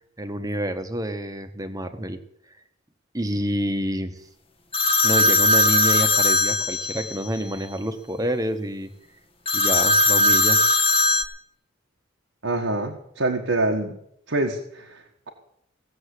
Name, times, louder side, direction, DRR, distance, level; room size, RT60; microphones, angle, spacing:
voice 1, 0.2-2.2 3.1-4.1 5.0-8.9 9.5-10.6, right 1 dB, 15° right, 8 dB, 1.2 m, -28 dB
sound 1, 4.7-7.3 9.5-11.2, left 2 dB, 30° left, 1.1 m, -19 dB
voice 2, 12.4-14.0 14.3-15.3, right 2 dB, 75° right, 1 dB, 1.4 m, -26 dB
17.0 x 7.2 x 8.2 m, 0.75 s
head